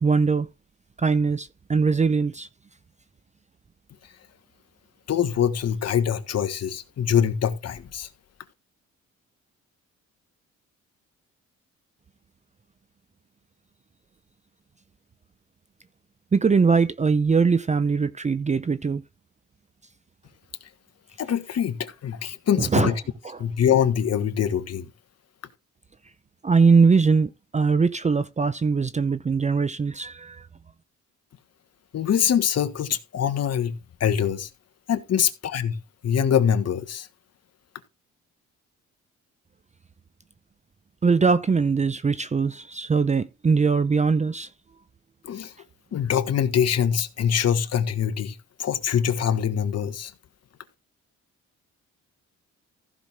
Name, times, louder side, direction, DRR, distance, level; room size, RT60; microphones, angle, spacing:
voice 1, 0.0-0.5 1.0-2.5 16.3-19.0 22.6-22.9 23.2-23.4 26.4-30.5 41.0-44.5, right 5 dB, 25° right, 0.6 m, -21 dB
voice 2, 5.1-8.1 21.2-22.9 23.4-24.9 31.9-34.5 34.9-35.8 36.0-37.1 45.3-45.5 45.9-48.3 48.6-50.1, left 8 dB, 55° left, 1.5 m, -24 dB
15.0 x 6.1 x 3.5 m
cardioid pair, 90°, 30 cm